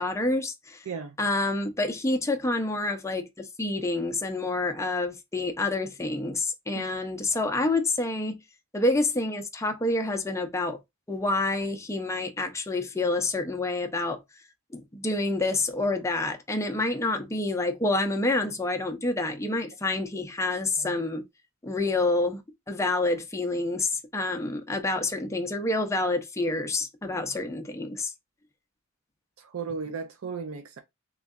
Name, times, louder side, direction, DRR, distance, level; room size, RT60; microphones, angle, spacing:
voice 1, 0.0-0.8 1.2-8.4 8.7-10.8 11.1-14.2 14.7-21.2 21.6-22.4 22.7-28.1, left 2 dB, 15° left, 0.5 m, -28 dB
voice 2, 29.4-30.8, right 5 dB, 65° right, 0.4 m, -35 dB
3.6 x 3.1 x 2.3 m
head